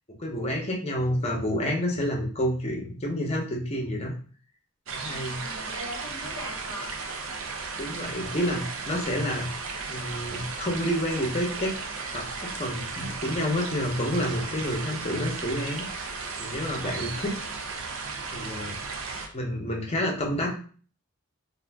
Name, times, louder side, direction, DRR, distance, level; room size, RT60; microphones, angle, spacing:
voice 1, 0.2-4.1 4.9-5.4 7.8-9.5 9.9-11.8 12.1-15.8 16.4-17.4 18.3-18.7 19.3-20.6, equal, 30° left, 0 dB, 0.6 m, -29 dB
sound 1, 4.9-19.3, right 4 dB, 65° right, 0.5 m, -35 dB
voice 2, 5.0-6.9 17.0-17.4, equal, 80° right, -4 dB, 1.3 m, -41 dB
2.4 x 2.4 x 3.4 m, 0.41 s
head